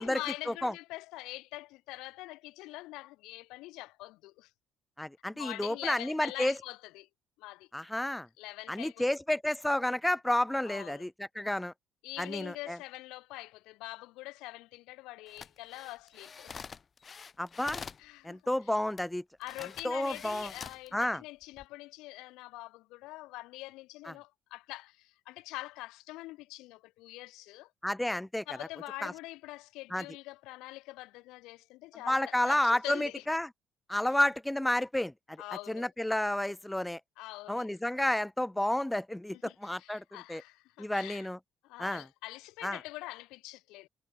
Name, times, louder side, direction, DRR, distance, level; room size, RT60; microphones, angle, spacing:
voice 1, 0.0-4.5 5.3-7.1 7.4-7.7 8.4-9.1 10.6-11.1 12.0-16.6 18.0-18.4 19.4-27.7 28.5-33.2 35.4-35.9 37.2-37.8 39.3-41.3 41.6-43.9, left 20 dB, 80° left, 6.2 m, -44 dB
voice 2, 5.0-6.5 7.7-8.3 8.7-11.7 12.2-12.8 17.4-17.8 18.2-19.2 19.8-20.5 20.9-21.2 24.1-24.2 27.8-28.4 29.0-29.1 29.9-30.0 32.1-33.5 33.9-35.4 35.7-37.0 37.5-40.0 40.3-40.4 40.8-41.4 41.8-42.1 42.6-42.8, left 1 dB, 5° left, 2.4 m, -31 dB
sound 1, 15.3-18.1 19.0-19.1 19.4-20.9 21.4-21.7, left 6 dB, 40° left, 4.7 m, -46 dB
supercardioid pair, 75°, 0 cm